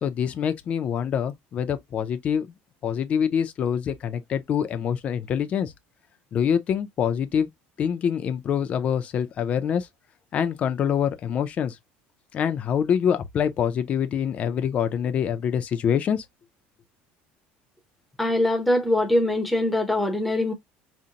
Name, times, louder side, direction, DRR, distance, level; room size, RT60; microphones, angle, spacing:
voice 1, 0.0-2.5 2.8-5.7 6.3-7.5 7.8-9.9 10.3-11.8 12.3-16.2, left 8 dB, 30° left, 0.5 m, -25 dB
voice 2, 18.2-20.5, left 1 dB, ahead, 0.8 m, -22 dB
5.1 x 2.2 x 2.8 m
cardioid pair, 170°, 4 cm